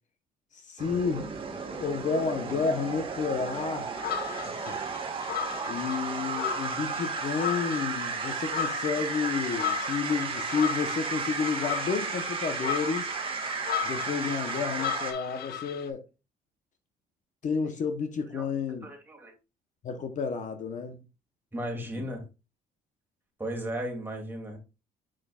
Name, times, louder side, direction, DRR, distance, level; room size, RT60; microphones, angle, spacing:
voice 1, 0.5-1.3 1.8-3.9 4.7-4.8 5.7-13.1 13.8-16.0 17.4-18.9 19.8-21.0 22.0-22.1, left 5 dB, 45° left, 1.0 m, -31 dB
sound 1, 0.8-15.1, right 5 dB, 30° right, 1.8 m, -34 dB
sound 2, 3.9-15.9, left 9 dB, 70° left, 1.0 m, -36 dB
voice 2, 18.8-19.3 21.5-22.2 23.4-24.6, right 1 dB, 10° right, 2.7 m, -35 dB
7.6 x 5.8 x 2.4 m
cardioid pair, 110°, 17 cm